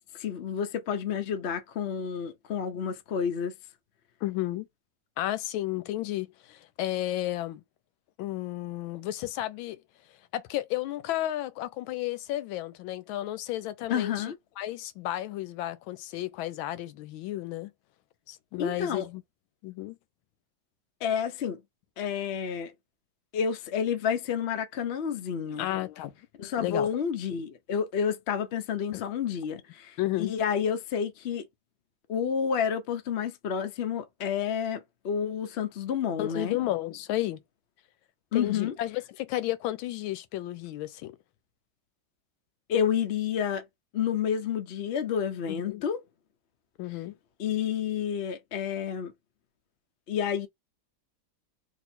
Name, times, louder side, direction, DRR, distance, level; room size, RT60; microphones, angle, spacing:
voice 1, 0.2-3.5 13.9-14.4 18.6-19.1 21.0-21.6 22.0-22.7 23.3-25.7 26.4-31.5 32.1-36.6 38.3-38.7 42.7-43.6 43.9-46.0 47.4-49.1 50.1-50.5, left 8 dB, 65° left, 0.6 m, -30 dB
voice 2, 4.2-4.7 5.2-7.6 8.2-9.8 10.3-14.2 14.6-17.7 18.3-19.2 19.6-20.0 25.5-26.1 26.6-26.9 28.9-29.0 30.0-30.3 36.2-37.4 38.3-41.2 45.5-45.9 46.8-47.2, left 14 dB, 90° left, 1.4 m, -32 dB
2.9 x 2.9 x 4.3 m
omnidirectional pair, 2.1 m